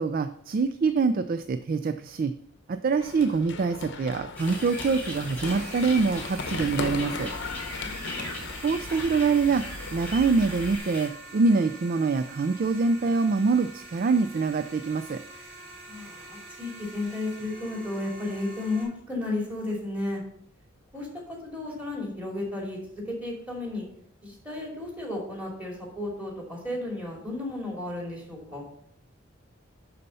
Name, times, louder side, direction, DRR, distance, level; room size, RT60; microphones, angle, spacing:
voice 1, 0.0-2.3 2.7-7.3 8.6-9.6 9.9-15.2, right 4 dB, 45° right, 10 dB, 0.3 m, -25 dB
Run, 3.0-10.8, left 3 dB, 60° left, 0.8 m, -37 dB
sound 1, 4.4-11.1, left 2 dB, 10° left, 1.8 m, -39 dB
sound 2, 5.5-18.8, right 2 dB, 75° right, 3.1 m, -46 dB
voice 2, 7.8-8.3 15.9-20.2 20.9-21.1 21.4-22.8 23.1-23.9 24.2-28.7, left 2 dB, 5° right, -2 dB, 2.6 m, -33 dB
10.5 x 4.2 x 5.6 m, 0.71 s
head